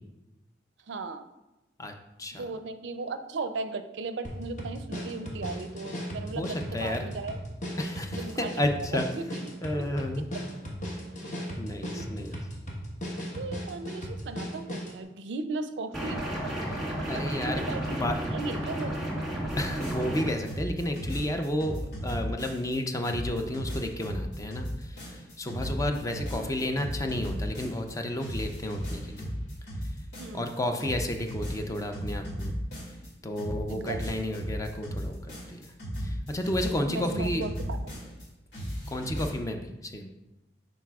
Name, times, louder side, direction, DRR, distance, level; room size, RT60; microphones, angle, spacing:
voice 1, 0.9-1.2 2.4-7.4 8.1-9.8 11.9-12.1 13.4-16.2 17.1-18.9 26.3-26.5 30.2-30.8 33.7-34.2 36.9-37.9, right 3 dB, 85° right, 10 dB, 0.4 m, -37 dB
sound 1, 4.2-15.0, equal, 45° left, 1.2 m, -37 dB
voice 2, 6.3-7.1 7.8-9.1 9.6-10.3 11.6-12.4 17.1-17.6 17.9-18.1 19.6-29.3 30.3-32.5 33.2-35.2 35.5-35.7 36.0-37.4 38.9-40.1, left 1 dB, 20° left, 5 dB, 0.5 m, -31 dB
sound 2, 15.9-20.3, right 1 dB, ahead, 1.5 m, -32 dB
sound 3, 19.5-20.2 20.5-22.8 23.0-27.9 28.2-30.5 30.8-33.1 33.4-38.3 38.5-39.4, equal, 75° left, 2.2 m, -35 dB
10.5 x 4.0 x 2.3 m, 0.98 s
head